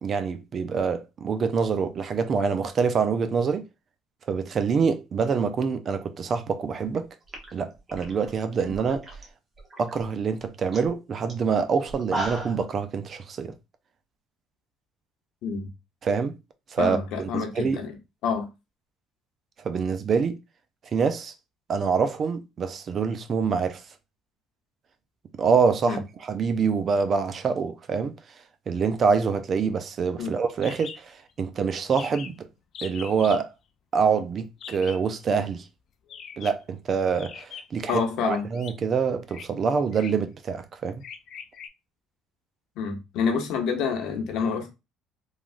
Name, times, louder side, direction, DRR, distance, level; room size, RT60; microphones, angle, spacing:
voice 1, 0.0-3.6 4.3-7.1 7.5-9.1 9.8-13.5 16.0-16.4 16.7-17.8 19.6-20.4 20.9-21.3 21.7-23.8 25.3-28.2 28.7-32.5 32.8-33.5 33.9-35.7 36.4-41.0, right 5 dB, 40° right, 0.4 m, -26 dB
sound 1, 6.8-7.0 7.3-9.2 9.6-10.0 10.4-10.5 10.7-10.9 11.3-11.4 11.9-12.7, right 2 dB, 25° right, 0.9 m, -35 dB
voice 2, 16.8-17.9 18.2-18.5 25.8-26.0 30.2-30.3 37.9-38.4 42.8-44.7, left 6 dB, 70° left, 0.9 m, -27 dB
sound 2, 30.6-31.0 31.3-31.4 31.6-31.7 31.9-32.4 32.7-33.4 34.6-35.1 36.1-36.6 37.2-37.9 38.5-38.7 39.3-39.5 39.9-40.3 41.0-41.7, left 7 dB, 55° left, 0.4 m, -41 dB
3.3 x 2.3 x 2.5 m
cardioid pair, 105°, 0 cm